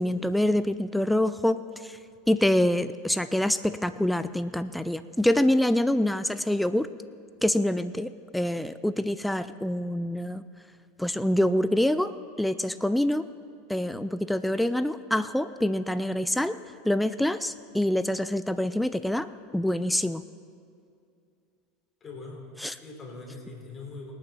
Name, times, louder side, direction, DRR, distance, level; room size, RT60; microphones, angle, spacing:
voice 1, 0.0-1.6 1.8-2.0 2.3-6.9 7.4-10.4 11.0-12.1 12.4-13.3 13.7-16.6 16.8-19.3 19.5-20.2 22.6-22.7, left 1 dB, 5° left, 13 dB, 0.5 m, -25 dB
voice 2, 22.0-22.5 22.7-24.1, left 3 dB, 25° left, 0 dB, 4.2 m, -42 dB
25.5 x 8.9 x 4.5 m, 2.4 s
hypercardioid pair, 85°, 0 cm